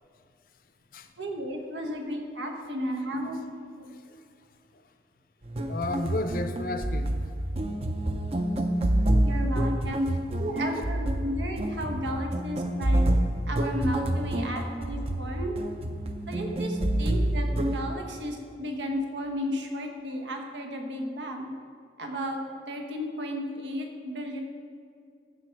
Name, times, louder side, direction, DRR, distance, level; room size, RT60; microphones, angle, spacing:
voice 1, 1.2-3.4 3.8-3.9 9.2-10.1 10.4-13.0 13.5-15.6 16.3-21.5 22.0-22.4 22.7-24.4, equal, 90° right, 3 dB, 1.2 m, -34 dB
voice 2, 3.1-3.4 5.7-7.1 9.8-10.0, left 2 dB, 50° left, 8 dB, 0.6 m, -32 dB
sound 1, 5.4-17.8, right 1 dB, 35° right, 0.6 m, -28 dB
14.5 x 4.9 x 4.6 m, 2.3 s
head